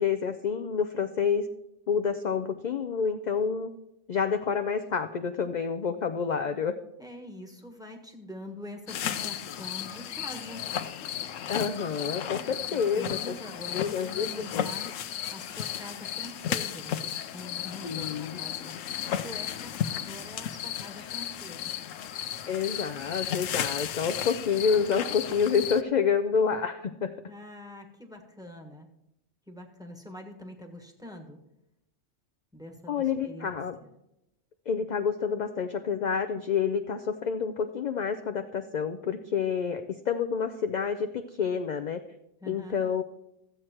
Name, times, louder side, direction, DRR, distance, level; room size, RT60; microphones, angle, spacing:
voice 1, 0.0-1.5 1.9-3.7 4.1-6.7 11.5-13.4 13.7-14.7 17.8-18.4 22.5-27.1 32.9-33.8 34.7-42.0 42.5-43.0, left 6 dB, 55° left, 8 dB, 0.5 m, -28 dB
voice 2, 7.0-10.7 12.5-14.9 15.3-18.7 19.1-21.7 27.3-28.9 29.5-31.4 32.5-33.9 42.4-42.8, left 1 dB, 5° right, 2 dB, 1.4 m, -44 dB
sound 1, 8.9-25.8, left 10 dB, 80° left, 1.0 m, -34 dB
14.0 x 8.0 x 4.4 m, 0.85 s
omnidirectional pair, 1.3 m